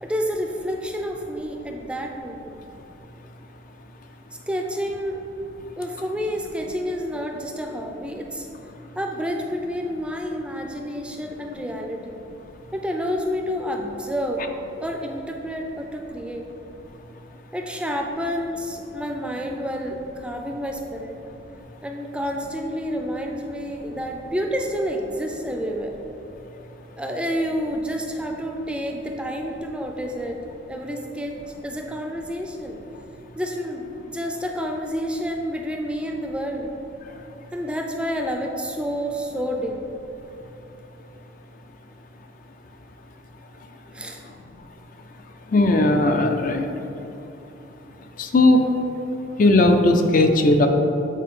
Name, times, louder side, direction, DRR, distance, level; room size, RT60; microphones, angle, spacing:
voice 1, 0.0-2.6 4.5-5.2 5.8-8.5 9.0-12.2 12.7-14.4 14.8-16.4 17.5-21.2 21.8-25.9 27.0-30.4 30.7-31.4 31.6-32.8 33.4-36.7 37.5-40.0 43.9-44.2, equal, 5° right, 2 dB, 0.4 m, -29 dB
voice 2, 45.5-46.7 48.2-48.6 49.4-50.7, left 2 dB, 50° left, 5 dB, 0.5 m, -17 dB
8.3 x 4.1 x 3.7 m, 2.9 s
head